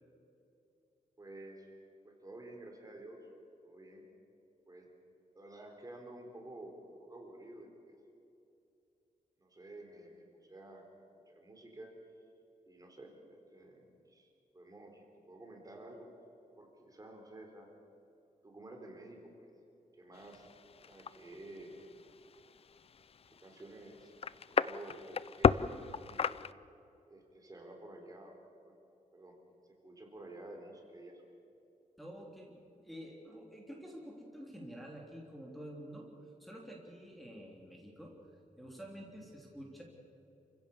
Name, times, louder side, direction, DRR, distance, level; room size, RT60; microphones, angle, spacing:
voice 1, 1.2-1.7 2.0-3.2 3.6-4.0 4.7-4.9 5.3-8.0 9.4-10.9 11.3-11.9 12.7-16.1 16.6-17.7 18.4-19.5 19.9-20.5 20.8-21.8 23.3-26.4 27.1-28.4 28.7-28.8 29.1-29.4 29.6-31.2, right 1 dB, 25° right, 2 dB, 3.8 m, -51 dB
sound 1, 20.1-26.5, left 6 dB, 45° left, 0.5 m, -35 dB
voice 2, 32.0-36.1 36.4-39.8, equal, ahead, -2 dB, 3.4 m, -49 dB
28.5 x 16.0 x 7.2 m, 2.8 s
wide cardioid pair, 125°, 14 cm